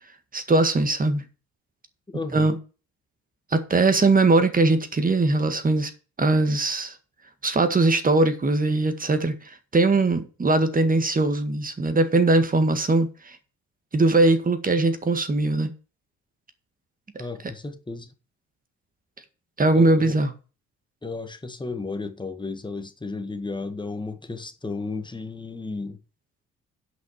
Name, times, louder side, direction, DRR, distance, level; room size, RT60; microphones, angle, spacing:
voice 1, 0.3-1.2 2.3-2.6 3.5-5.9 6.2-7.0 7.4-9.4 9.7-13.4 13.9-15.7 19.6-20.3, right 2 dB, 30° right, 1.8 m, -20 dB
voice 2, 2.1-2.5 17.2-18.1 19.7-20.2 21.0-26.0, left 3 dB, 15° left, 1.6 m, -33 dB
8.2 x 5.8 x 7.3 m
cardioid pair, 90°, 30 cm